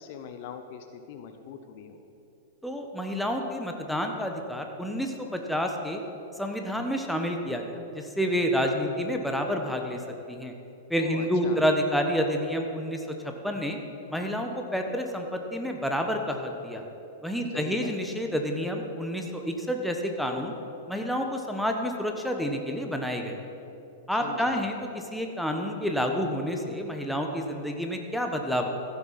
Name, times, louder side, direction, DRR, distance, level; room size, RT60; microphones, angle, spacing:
voice 1, 0.0-2.0 11.0-11.6 17.5-18.0 24.2-24.7, left 7 dB, 55° left, 8 dB, 0.7 m, -41 dB
voice 2, 2.6-6.0 6.4-10.0 10.3-10.5 10.9-13.8 14.1-16.8 17.2-20.5 20.9-23.4 24.1-24.8 25.1-28.7, equal, ahead, 3 dB, 1.1 m, -29 dB
15.0 x 7.1 x 4.2 m, 2.8 s
hypercardioid pair, 105°, 0 cm